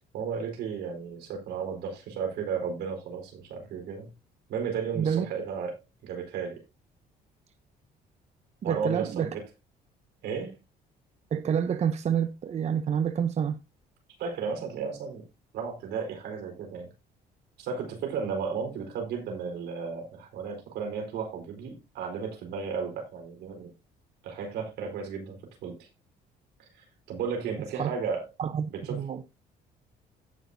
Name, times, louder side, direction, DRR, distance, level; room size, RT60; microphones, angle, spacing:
voice 1, 0.1-4.1 4.5-5.7 6.0-6.6 8.6-9.4 10.2-10.6 14.2-15.2 15.5-16.9 17.6-23.7 24.2-25.9 26.8-28.2 28.7-29.0, right 6 dB, 80° right, 4.4 m, -34 dB
voice 2, 8.6-9.3 11.3-13.6 27.8-27.9 28.4-29.2, right 8 dB, 40° right, 0.8 m, -28 dB
16.5 x 6.0 x 2.7 m
cardioid pair, 110°, 17 cm